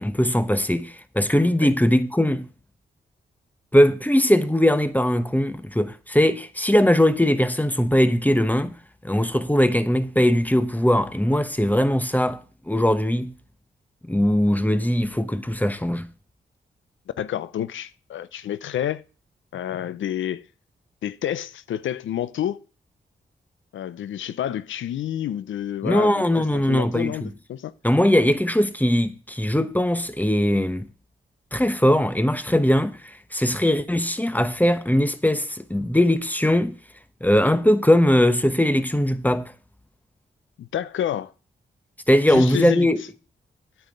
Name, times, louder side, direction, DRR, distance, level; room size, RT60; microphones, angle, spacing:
voice 1, 0.0-2.5 3.7-8.8 9.0-13.3 14.0-16.1 25.8-27.3 27.8-30.9 31.5-36.7 37.2-39.5 42.1-43.0, left 1 dB, 10° left, 1.1 m, -20 dB
voice 2, 17.2-19.0 19.5-20.5 21.0-22.6 23.7-27.7 40.6-41.3 42.3-42.9, left 10 dB, 80° left, 0.6 m, -29 dB
9.1 x 5.6 x 7.9 m
supercardioid pair, 40°, 20 cm